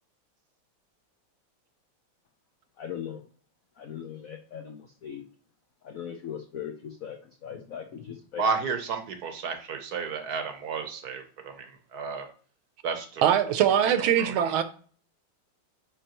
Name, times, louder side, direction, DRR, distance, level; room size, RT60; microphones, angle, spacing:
voice 1, 2.8-3.2 3.8-5.2 5.8-7.2 7.4-8.4, left 8 dB, 90° left, 0.7 m, -39 dB
voice 2, 8.4-12.3 12.8-13.2 14.0-14.6, right 5 dB, 60° right, 1.1 m, -32 dB
voice 3, 13.2-14.6, right 10 dB, 75° right, 1.4 m, -22 dB
9.7 x 3.4 x 2.9 m
omnidirectional pair, 2.3 m